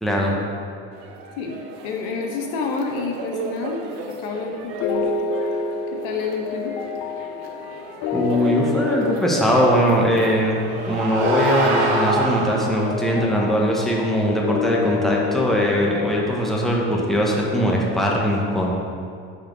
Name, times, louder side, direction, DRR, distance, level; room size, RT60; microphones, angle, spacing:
voice 1, 0.0-0.4 8.1-18.7, equal, ahead, -3 dB, 1.0 m, -21 dB
sound 1, 0.9-12.3, right 4 dB, 80° right, 0.9 m, -35 dB
voice 2, 1.8-5.3 5.9-6.8, left 5 dB, 80° left, 1 dB, 1.1 m, -29 dB
sound 2, 4.8-16.2, left 5 dB, 60° left, 0.8 m, -28 dB
sound 3, 10.2-13.1, right 3 dB, 60° right, 1.5 m, -25 dB
5.9 x 4.4 x 6.1 m, 2.3 s
cardioid pair, 125°, 29 cm